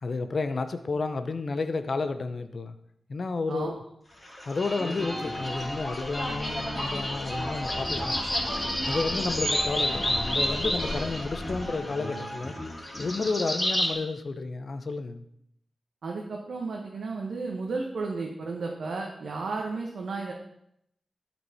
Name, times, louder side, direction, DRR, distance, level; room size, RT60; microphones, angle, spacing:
voice 1, 0.0-2.8 3.1-3.8 4.5-8.1 8.9-12.5 13.0-15.2, left 3 dB, 55° left, 10 dB, 0.7 m, -31 dB
sound 1, 4.2-13.9, left 1 dB, 15° left, 3.0 m, -30 dB
voice 2, 16.0-20.3, right 3 dB, 75° right, 0 dB, 1.0 m, -33 dB
11.5 x 4.6 x 4.2 m, 0.77 s
wide cardioid pair, 95°, 0 cm